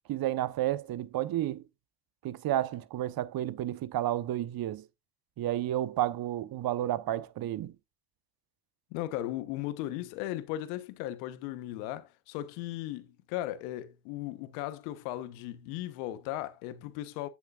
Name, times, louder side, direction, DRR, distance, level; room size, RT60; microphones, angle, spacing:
voice 1, 0.1-1.6 2.2-4.8 5.4-7.7, right 13 dB, 50° right, 1.1 m, -31 dB
voice 2, 8.9-17.3, left 14 dB, 85° left, 1.2 m, -37 dB
9.6 x 8.3 x 2.5 m
supercardioid pair, 80°, 45 cm